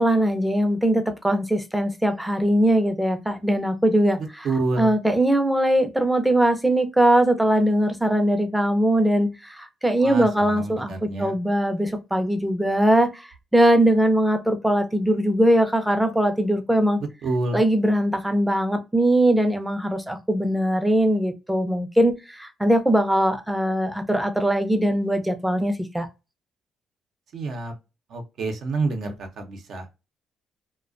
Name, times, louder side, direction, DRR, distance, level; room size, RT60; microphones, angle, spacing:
voice 1, 0.0-4.2 4.8-17.0 17.5-26.1, right 1 dB, 5° right, 0.5 m, -21 dB
voice 2, 4.2-4.9 10.0-11.3 17.2-17.6 27.3-27.7 28.1-29.9, right 3 dB, 70° right, 0.6 m, -28 dB
2.3 x 2.1 x 2.4 m
cardioid pair, 90°, 0 cm